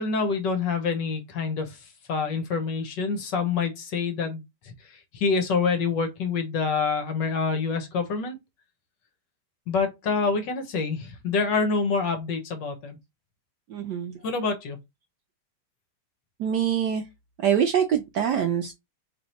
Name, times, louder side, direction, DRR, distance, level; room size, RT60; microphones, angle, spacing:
voice 1, 0.0-1.8 2.1-8.4 9.7-13.0 14.2-14.8, left 4 dB, 65° left, 1.4 m, -27 dB
voice 2, 13.7-14.1 16.4-17.0 17.4-18.7, right 8 dB, 75° right, 1.0 m, -24 dB
3.5 x 3.2 x 4.0 m
omnidirectional pair, 2.4 m